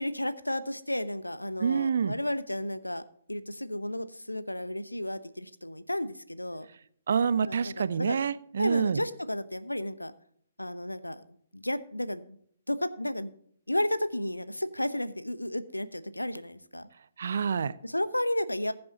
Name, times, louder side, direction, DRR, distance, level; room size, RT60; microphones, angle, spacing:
voice 1, 0.0-3.0 3.3-6.7 7.5-8.2 8.6-10.1 10.6-11.2 11.5-12.4 12.7-13.3 13.7-16.9 17.8-18.7, left 1 dB, 90° left, 13 dB, 0.8 m, -32 dB
voice 2, 1.6-2.2 7.1-9.0 17.2-17.7, right 6 dB, 60° right, 16 dB, 0.6 m, -27 dB
20.0 x 7.8 x 2.8 m, 0.63 s
figure-of-eight pair, 125°, 0 cm